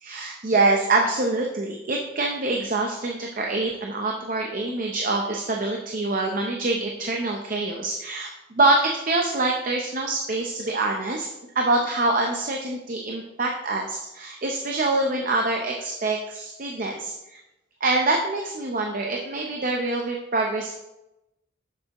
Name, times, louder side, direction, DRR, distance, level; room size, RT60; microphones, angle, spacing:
voice 1, 0.0-11.3 11.5-17.4 17.8-20.7, right 2 dB, 45° right, 1 dB, 0.6 m, -25 dB
7.2 x 6.7 x 2.9 m, 0.93 s
head